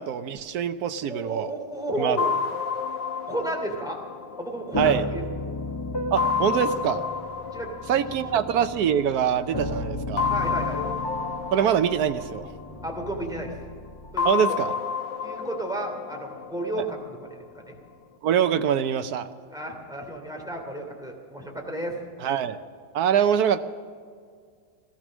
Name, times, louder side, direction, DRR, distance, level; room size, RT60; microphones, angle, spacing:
voice 1, 0.0-1.5 2.0-2.2 4.8-5.0 6.1-7.0 7.9-10.3 11.5-12.5 14.2-14.8 18.2-19.3 22.2-22.6 22.9-23.6, right 8 dB, 65° right, 9 dB, 1.3 m, -24 dB
voice 2, 1.0-2.3 3.3-4.0 4.4-5.2 7.5-8.0 8.3-8.4 10.3-10.8 12.8-13.5 14.1-14.4 15.2-17.6 19.5-22.0, right 1 dB, ahead, 0 dB, 2.6 m, -33 dB
sound 1, 2.2-5.5 6.2-9.1 10.2-13.3 14.2-17.3, left 6 dB, 85° left, 1.7 m, -31 dB
sound 2, 4.7-14.3, left 1 dB, 30° left, 0.5 m, -34 dB
17.0 x 13.5 x 6.2 m, 2.1 s
omnidirectional pair, 1.9 m